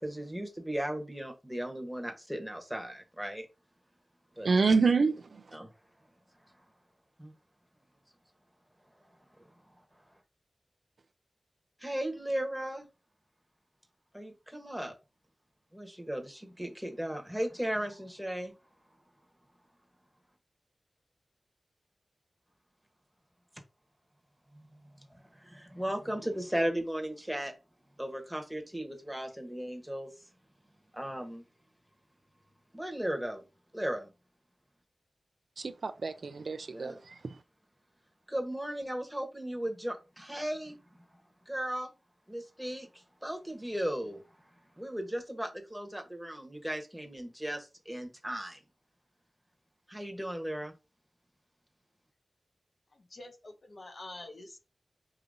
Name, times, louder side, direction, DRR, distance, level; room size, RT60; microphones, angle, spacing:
voice 1, 0.0-3.5 4.4-4.5 5.5-5.7 7.2-7.3 11.8-12.9 14.1-14.9 15.7-18.5 24.5-24.6 25.4-27.5 28.0-30.1 30.9-31.4 32.7-33.4 33.7-34.1 36.7-37.0 38.3-40.8 41.5-41.9 42.3-44.2 44.8-48.6 49.9-50.7, right 1 dB, 5° right, 1.1 m, -36 dB
voice 2, 4.4-5.4 35.6-37.1, right 4 dB, 75° right, 0.4 m, -27 dB
voice 3, 52.9-54.6, left 2 dB, 55° left, 0.8 m, -47 dB
4.8 x 2.8 x 2.6 m
cardioid pair, 55°, 0 cm